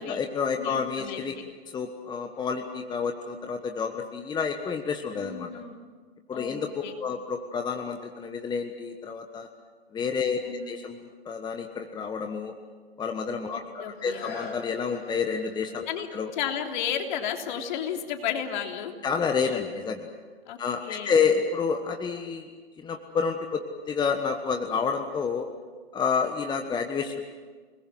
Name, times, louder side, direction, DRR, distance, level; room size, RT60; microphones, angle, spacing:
voice 1, 0.0-1.3 1.7-5.5 6.3-9.5 9.9-10.4 10.7-12.5 13.0-16.3 19.0-20.1 20.6-22.5 22.8-25.5 25.9-27.2, left 5 dB, 15° left, 5 dB, 1.4 m, -29 dB
voice 2, 0.6-1.4 5.1-5.8 6.3-6.9 10.4-10.8 13.5-14.2 15.9-18.9 19.4-19.6 20.5-21.1, left 8 dB, 50° left, 3 dB, 3.3 m, -33 dB
sound 1, 13.9-19.5 20.1-20.2, left 5 dB, 30° left, 4.6 m, -47 dB
29.0 x 20.5 x 7.6 m, 1.5 s
hypercardioid pair, 120°, 31 cm